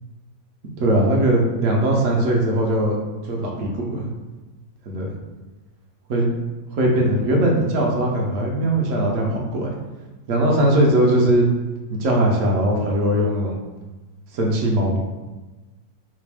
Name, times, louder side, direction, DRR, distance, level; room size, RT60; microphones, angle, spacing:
voice 1, 0.8-3.0 3.2-4.1 4.9-5.1 6.1-6.3 6.7-9.7 10.3-11.4 11.9-13.6 14.3-15.0, right 1 dB, 60° right, -1 dB, 0.8 m, -20 dB
3.2 x 2.6 x 3.3 m, 1.2 s
omnidirectional pair, 1.9 m